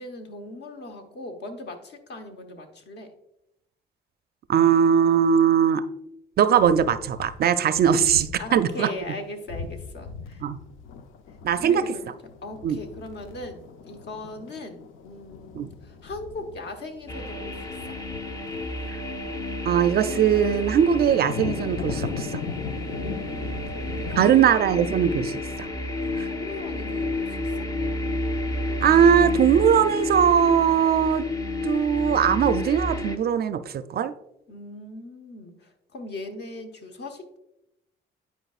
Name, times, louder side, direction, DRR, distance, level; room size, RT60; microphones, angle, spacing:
voice 1, 0.0-3.1 8.4-10.4 11.5-12.1 12.4-18.0 22.9-24.5 26.3-27.7 34.5-37.4, left 2 dB, 60° left, 4 dB, 1.1 m, -39 dB
voice 2, 4.5-5.8 6.4-8.9 10.4-10.6 11.4-11.8 12.6-12.8 15.5-15.7 18.9-19.0 19.7-22.4 24.2-25.3 25.6-25.7 26.2-26.3 28.8-31.2 31.6-34.1, right 8 dB, 50° right, 12 dB, 0.4 m, -20 dB
sound 1, 6.6-8.6 9.0-9.1 9.5-24.3, left 6 dB, 85° left, 0.5 m, -38 dB
sound 2, 17.1-33.2, left 2 dB, 20° left, 0.6 m, -30 dB
10.0 x 4.7 x 2.4 m, 0.84 s
cardioid pair, 90°, 20 cm